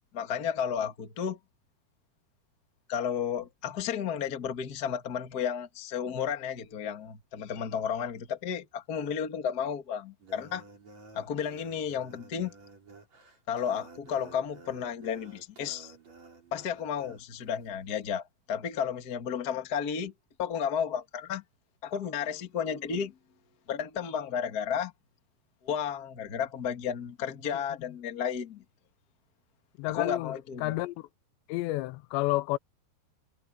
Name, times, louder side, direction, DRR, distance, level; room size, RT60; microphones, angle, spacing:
voice 1, 0.1-1.4 2.9-10.6 11.1-12.5 13.5-15.9 16.5-20.1 20.4-21.4 21.8-23.1 23.7-24.9 25.6-28.6 29.9-30.8, left 7 dB, 45° left, 1.2 m, -33 dB
sound 1, 10.2-17.2, right 3 dB, 40° right, 7.5 m, -52 dB
voice 2, 29.8-31.1 31.5-32.6, left 19 dB, 85° left, 2.8 m, -30 dB
omnidirectional pair, 5.0 m